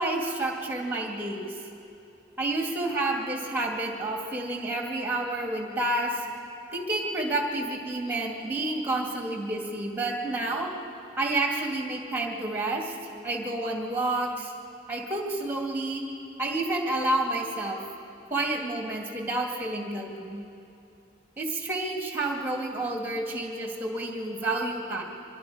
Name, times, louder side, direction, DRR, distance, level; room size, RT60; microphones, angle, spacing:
voice 1, 0.0-1.5 2.4-6.3 6.7-10.7 11.2-12.9 13.2-14.5 14.9-16.0 16.4-17.8 18.3-20.4 21.4-25.0, right 2 dB, 10° right, 0 dB, 2.1 m, -29 dB
24.5 x 21.5 x 5.0 m, 2.7 s
head